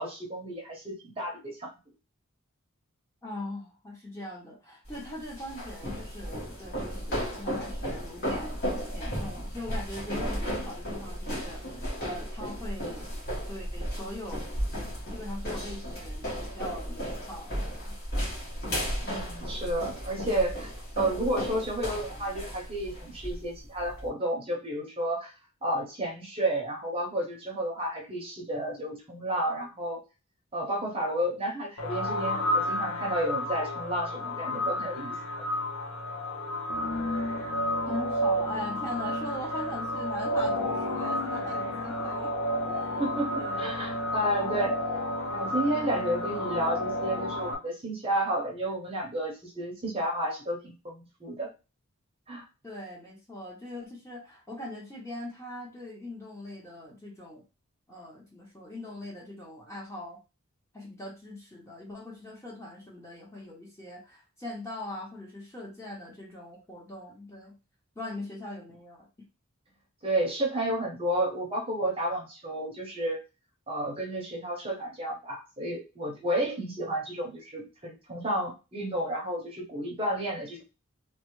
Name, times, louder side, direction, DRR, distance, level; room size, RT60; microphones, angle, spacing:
voice 1, 0.0-1.7 19.0-20.7 21.0-25.3 25.6-30.0 30.5-35.2 43.0-44.8 45.3-51.5 52.3-52.4 70.0-73.2 73.7-80.6, right 1 dB, 25° right, -1 dB, 0.8 m, -31 dB
voice 2, 3.2-8.6 8.9-13.1 13.5-14.5 15.1-18.0 37.9-42.4 42.7-43.0 43.4-43.8 52.6-57.4 57.9-60.2 60.7-67.6 67.9-69.1, left 1 dB, 15° left, -3 dB, 0.9 m, -41 dB
sound 1, 4.9-24.1, equal, 45° left, 1.4 m, -34 dB
sound 2, 31.8-47.5, left 1 dB, 80° left, 0.7 m, -31 dB
3.2 x 2.1 x 3.0 m, 0.29 s
head